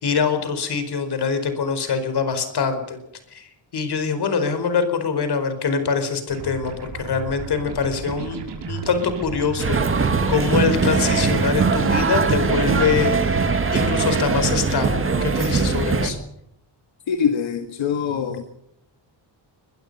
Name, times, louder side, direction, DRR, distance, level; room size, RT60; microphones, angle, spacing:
voice 1, 0.0-3.0 3.3-13.4 13.7-16.2, left 5 dB, 55° left, 9 dB, 4.7 m, -24 dB
sound 1, 6.3-15.9, right 5 dB, 60° right, 5.5 m, -34 dB
sound 2, 9.6-16.1, right 4 dB, 25° right, 2.1 m, -21 dB
voice 2, 17.1-18.4, left 7 dB, 75° left, 7 dB, 1.9 m, -23 dB
22.0 x 21.0 x 5.5 m, 0.78 s
wide cardioid pair, 175°, 46 cm